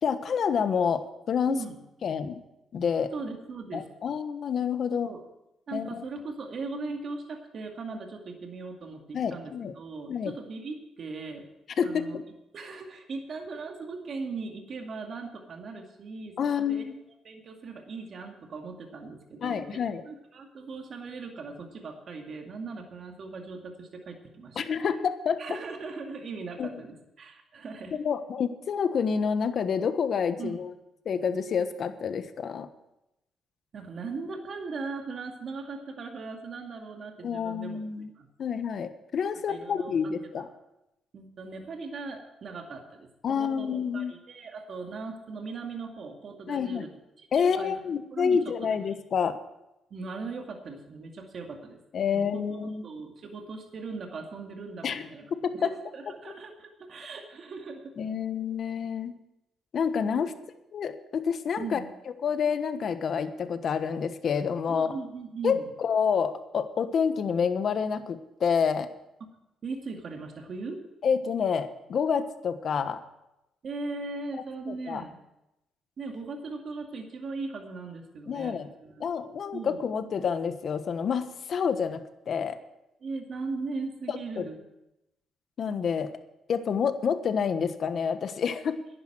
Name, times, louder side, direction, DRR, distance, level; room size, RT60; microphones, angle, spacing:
voice 1, 0.0-1.6 2.0-2.4 2.7-3.1 3.7-5.1 5.7-6.0 9.1-9.7 10.1-10.3 11.8-12.2 16.4-17.0 19.4-20.0 24.6-25.4 26.6-26.7 27.9-30.7 31.0-32.7 37.2-38.1 38.4-40.5 43.2-44.1 46.5-46.9 47.3-49.4 51.9-52.8 54.8-55.7 58.0-59.1 59.7-60.3 60.7-61.8 62.2-64.9 65.4-68.9 71.0-73.0 74.9-75.0 78.3-78.7 79.0-82.6 84.1-84.5 85.6-86.1 86.5-88.8, left 6 dB, 55° left, 10 dB, 1.2 m, -28 dB
voice 2, 1.5-1.8 3.1-3.9 4.9-5.2 5.7-11.5 11.8-12.2 12.5-16.9 17.2-24.6 25.4-28.0 30.4-30.6 33.7-37.8 38.2-38.3 39.5-40.5 41.1-46.9 47.2-48.4 48.7-48.9 49.9-51.8 52.1-55.2 55.5-57.8 60.1-60.3 61.6-61.9 64.7-65.7 69.2-69.3 69.6-70.8 73.6-75.2 76.0-79.0 79.5-79.8 83.0-84.6, right 4 dB, 55° right, 3 dB, 2.3 m, -39 dB
11.0 x 10.5 x 7.5 m, 0.90 s
cardioid pair, 90°, 0 cm